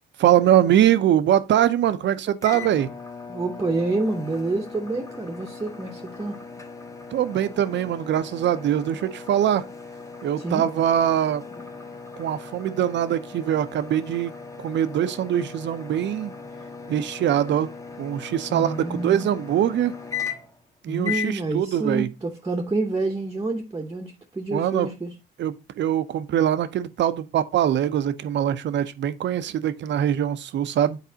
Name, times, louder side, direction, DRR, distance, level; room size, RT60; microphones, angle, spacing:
voice 1, 0.2-2.9 7.1-9.6 10.2-11.4 12.2-14.3 14.6-16.3 16.9-17.7 18.0-19.9 20.8-22.1 24.5-24.9 25.4-31.0, right 10 dB, 65° right, 0.6 m, -22 dB
sound 1, 2.4-20.6 21.0-21.4, left 6 dB, 15° left, 0.9 m, -38 dB
voice 2, 3.3-6.4 10.4-10.6 18.5-19.3 20.9-25.1, right 2 dB, 15° right, 0.8 m, -28 dB
9.2 x 4.1 x 2.7 m
cardioid pair, 90°, 20 cm